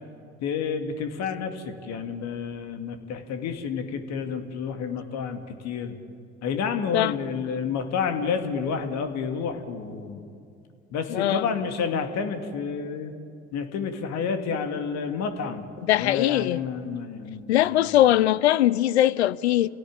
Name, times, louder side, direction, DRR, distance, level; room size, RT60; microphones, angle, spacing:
voice 1, 0.4-5.9 6.4-10.2 10.9-13.1 13.5-15.6 15.9-17.9, left 6 dB, 55° left, 2.4 m, -30 dB
voice 2, 11.1-11.5 15.8-16.6 17.5-19.7, left 13 dB, 75° left, 0.6 m, -21 dB
29.5 x 17.0 x 8.9 m
figure-of-eight pair, 60°, 33 cm